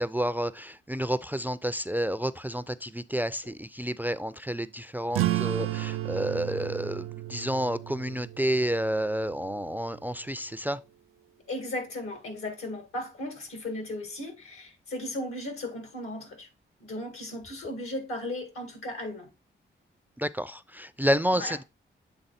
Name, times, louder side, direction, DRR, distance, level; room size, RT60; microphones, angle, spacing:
voice 1, 0.0-10.8 20.2-21.6, equal, 10° right, 0.3 m, -30 dB
sound 1, 5.1-10.2, right 15 dB, 85° right, 0.4 m, -33 dB
voice 2, 11.5-16.5 16.8-19.3 21.4-21.5, left 1 dB, 90° left, 2.0 m, -36 dB
8.0 x 3.5 x 4.1 m
cardioid pair, 80°, 21 cm